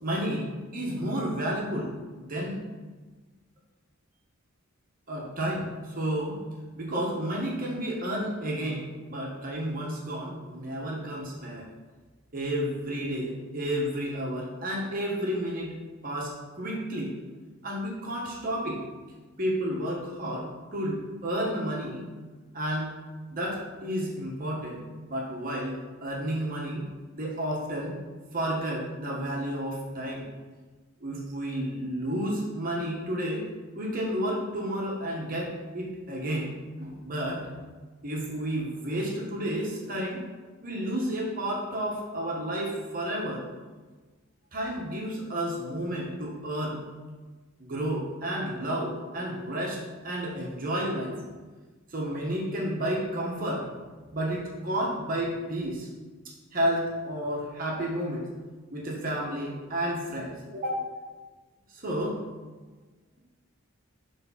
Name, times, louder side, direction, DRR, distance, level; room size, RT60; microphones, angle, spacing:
voice 1, 0.0-0.5 0.7-2.6 5.1-6.4 6.7-11.6 12.3-15.8 16.0-17.1 17.6-18.8 19.4-22.0 22.5-22.9 23.3-25.8 26.0-26.9 27.1-27.9 28.3-30.2 31.0-33.4 33.7-36.5 36.8-37.5 38.0-40.2 40.6-43.4 44.5-46.8 47.6-49.8 50.0-51.2 51.9-53.7 54.1-55.9 56.5-58.3 58.7-60.9 61.7-62.2, equal, 40° right, -3 dB, 1.2 m, -31 dB
6.8 x 3.4 x 5.6 m, 1.3 s
head